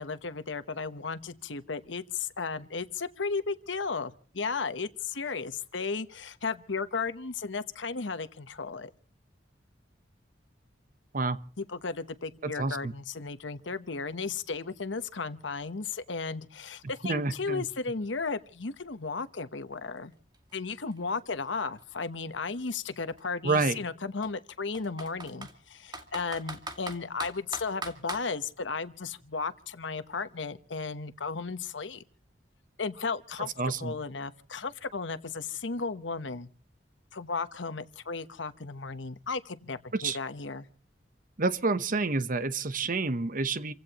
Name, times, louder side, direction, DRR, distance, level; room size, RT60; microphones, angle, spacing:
voice 1, 0.0-8.9 11.6-20.1 20.5-32.0 32.8-36.5 37.1-40.7, left 4 dB, 80° left, 1.1 m, -35 dB
voice 2, 12.4-12.9 17.0-17.6 23.4-23.8 33.6-33.9 39.9-40.2 41.4-43.7, right 3 dB, 45° right, 1.0 m, -28 dB
Computer keyboard, 20.0-20.1 20.3-22.3 23.1-23.2 23.5-23.6 24.2-25.5 25.9-28.3, right 2 dB, 25° right, 2.3 m, -40 dB
29.0 x 16.0 x 3.0 m
head